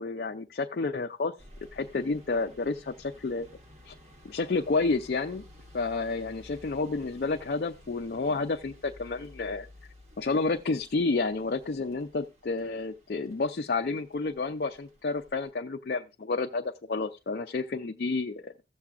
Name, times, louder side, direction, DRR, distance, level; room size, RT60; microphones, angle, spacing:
voice 1, 0.0-1.3 1.7-3.5 3.9-4.0 4.2-5.4 5.7-9.7 10.2-18.5, left 3 dB, 55° left, 3 dB, 0.4 m, -30 dB
sound 1, 1.4-15.5, left 1 dB, 35° right, 1.0 m, -54 dB
16.0 x 7.0 x 2.4 m, 0.27 s
head